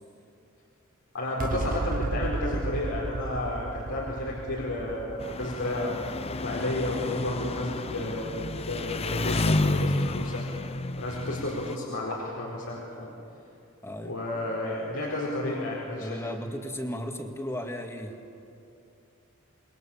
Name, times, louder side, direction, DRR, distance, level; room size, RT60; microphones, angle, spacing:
voice 1, 1.1-5.9 6.4-10.4 11.0-13.1 14.0-16.1, left 1 dB, 85° left, -5 dB, 4.6 m, -32 dB
sound 1, 1.4-8.1, right 3 dB, 40° right, 0.6 m, -35 dB
Engine, 5.2-11.8, left 2 dB, 30° left, 0.7 m, -30 dB
voice 2, 13.8-14.2 16.0-18.2, equal, 10° left, 4 dB, 1.9 m, -35 dB
28.0 x 21.5 x 7.3 m, 2.7 s
head